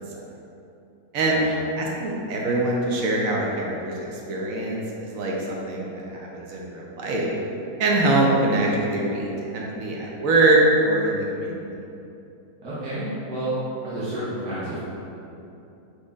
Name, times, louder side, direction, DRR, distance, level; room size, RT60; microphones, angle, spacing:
voice 1, 1.8-4.8 5.1-7.3 7.8-11.6, right 2 dB, 65° right, -2 dB, 1.0 m, -23 dB
voice 2, 12.6-13.6 13.8-14.8, right 1 dB, 85° right, -10 dB, 1.4 m, -30 dB
4.4 x 3.1 x 3.5 m, 2.8 s
omnidirectional pair, 1.7 m